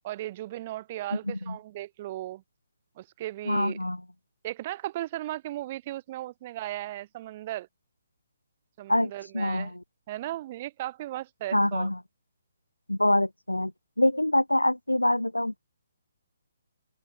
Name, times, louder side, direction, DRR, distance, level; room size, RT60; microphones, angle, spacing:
voice 1, 0.0-2.4 3.0-3.8 4.4-7.7 8.8-9.7 10.1-11.9, right 15 dB, 35° right, 6.3 m, -36 dB
voice 2, 3.5-4.0 8.9-9.8 11.5-12.0 12.9-13.7 14.0-15.6, left 1 dB, 90° left, 0.6 m, -25 dB
open air
figure-of-eight pair, 135°, 0 cm